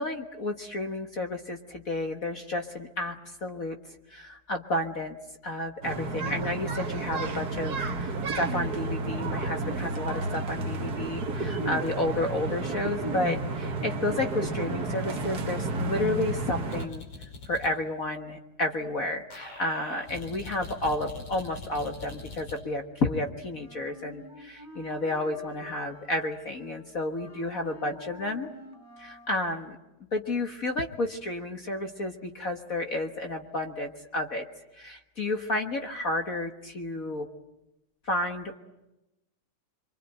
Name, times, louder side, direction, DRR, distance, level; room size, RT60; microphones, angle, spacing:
voice 1, 0.0-3.2 3.4-3.8 4.1-5.1 5.4-17.0 17.5-28.5 29.0-29.8 30.1-34.4 34.7-37.3 38.0-38.6, left 2 dB, 45° left, 4 dB, 1.1 m, -31 dB
sound 1, 5.8-16.9, right 2 dB, 40° right, 1.6 m, -31 dB
sound 2, 16.7-17.7 19.3-22.6, left 3 dB, 60° left, 6.6 m, -43 dB
Wind instrument woodwind instrument, 23.5-29.4, right 1 dB, 5° left, 4.9 m, -48 dB
27.0 x 24.5 x 9.0 m, 0.95 s
omnidirectional pair, 3.4 m